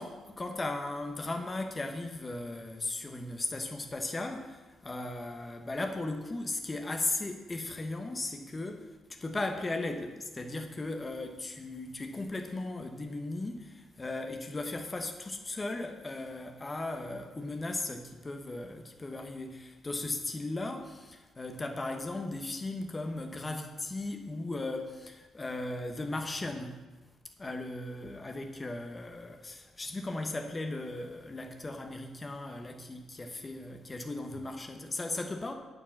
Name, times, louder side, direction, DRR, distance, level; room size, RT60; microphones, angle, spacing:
voice 1, 0.0-26.7 27.4-35.5, left 2 dB, 25° left, 4 dB, 1.0 m, -37 dB
8.9 x 5.0 x 7.3 m, 1.2 s
cardioid pair, 90°, 0 cm